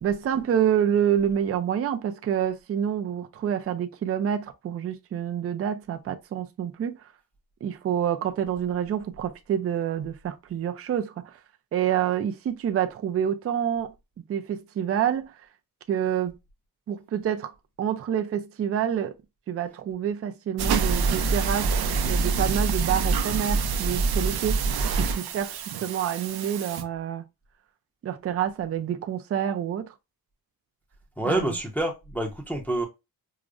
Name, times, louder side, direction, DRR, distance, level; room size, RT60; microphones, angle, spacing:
voice 1, 0.0-7.0 7.6-11.4 11.7-13.9 14.3-15.3 15.9-16.4 16.9-17.5 17.8-19.1 19.5-21.7 22.1-24.6 25.0-27.2 28.0-29.9 31.2-31.5, right 9 dB, 40° right, 0.4 m, -27 dB
sound 1, 20.6-26.8, right 4 dB, 90° right, 0.6 m, -26 dB
voice 2, 31.2-32.8, right 1 dB, 5° left, 0.6 m, -27 dB
4.7 x 2.0 x 2.4 m
wide cardioid pair, 150°, 37 cm